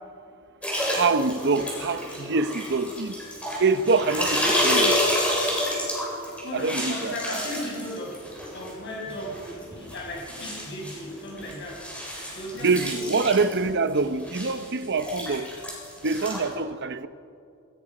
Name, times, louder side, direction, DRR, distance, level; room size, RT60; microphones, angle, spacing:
sound 1, 0.6-8.7 9.1-16.5, left 1 dB, 5° left, 7.4 m, -29 dB
voice 1, 0.9-3.2 3.6-5.0 6.5-7.2 12.6-15.5 16.0-17.1, right 4 dB, 55° right, 0.9 m, -25 dB
voice 2, 6.4-8.2 8.5-11.8 12.3-13.3, left 1 dB, 55° left, 6.2 m, -36 dB
22.5 x 22.5 x 6.1 m
head